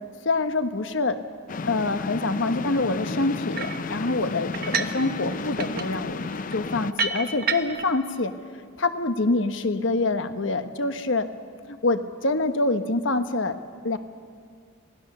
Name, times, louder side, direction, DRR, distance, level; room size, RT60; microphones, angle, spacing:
voice 1, 0.2-1.2 1.7-6.2 6.5-8.3 8.8-11.3 11.7-13.6 13.8-14.0, left 2 dB, 75° left, 9 dB, 1.1 m, -25 dB
sound 1, 1.5-6.9, left 3 dB, 45° left, 0.5 m, -32 dB
sound 2, 3.6-3.9 4.5-5.0 5.3-7.9, right 4 dB, 50° right, 1.1 m, -30 dB
25.0 x 18.0 x 6.7 m, 2.1 s
head